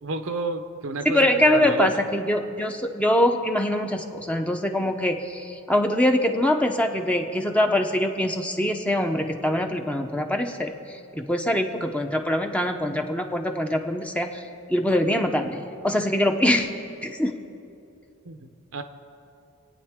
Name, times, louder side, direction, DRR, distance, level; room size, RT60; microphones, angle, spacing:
voice 1, 0.0-1.9 18.2-18.8, right 3 dB, 70° right, 8 dB, 0.8 m, -30 dB
voice 2, 1.0-14.4 14.7-16.7 17.0-17.3, left 1 dB, 5° left, 4 dB, 0.7 m, -23 dB
27.0 x 9.1 x 3.6 m, 2.7 s
head